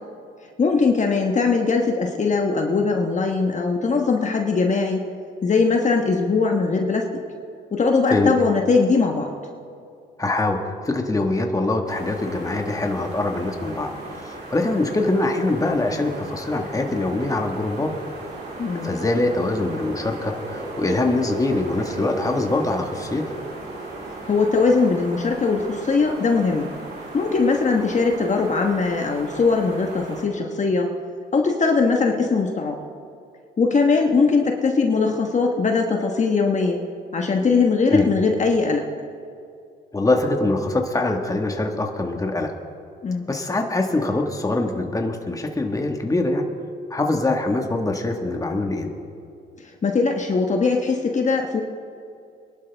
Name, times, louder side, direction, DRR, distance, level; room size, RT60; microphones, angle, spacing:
voice 1, 0.6-5.0 5.4-7.1 7.7-9.3 18.6-18.9 24.3-26.7 27.1-30.9 31.3-32.8 33.6-36.8 37.1-38.8 43.0-43.2 49.8-51.6, left 4 dB, 35° left, 2 dB, 1.2 m, -20 dB
voice 2, 10.2-18.0 18.8-23.3 37.9-38.1 39.9-42.5 43.3-46.4 46.9-48.9, left 2 dB, 15° left, 3 dB, 1.6 m, -23 dB
sound 1, 11.9-30.2, right 2 dB, 55° right, 4.1 m, -36 dB
24.5 x 11.5 x 3.5 m, 2.5 s
cardioid pair, 90°, 20 cm